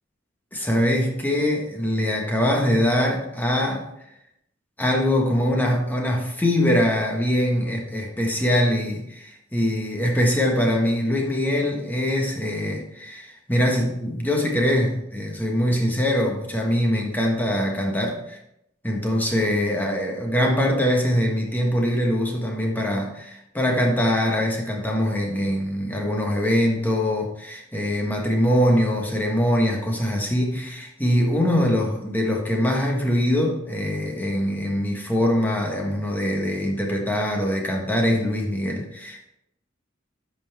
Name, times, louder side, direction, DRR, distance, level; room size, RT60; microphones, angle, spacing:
voice 1, 0.5-3.9 4.8-18.4 18.8-39.3, equal, 10° left, 0 dB, 1.4 m, -23 dB
10.5 x 5.7 x 3.5 m, 0.80 s
head